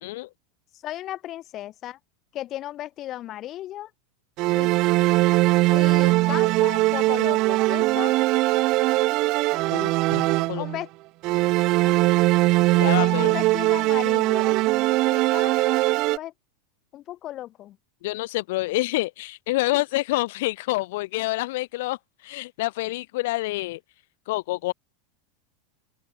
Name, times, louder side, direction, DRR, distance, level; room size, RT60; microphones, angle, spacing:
voice 1, 0.7-2.0 2.3-3.9 4.5-4.8 5.7-8.2 10.6-10.9 11.8-12.2 13.0-14.6 15.1-15.8 16.1-16.3 16.9-17.8 19.7-19.8, left 13 dB, 40° left, 4.6 m, -35 dB
sound 1, 4.4-10.8 11.2-16.2, right 21 dB, 50° right, 0.5 m, -21 dB
voice 2, 9.7-10.7 12.7-13.3 18.0-23.8 24.3-24.7, left 19 dB, 70° left, 0.8 m, -27 dB
open air
supercardioid pair, 125°, 0 cm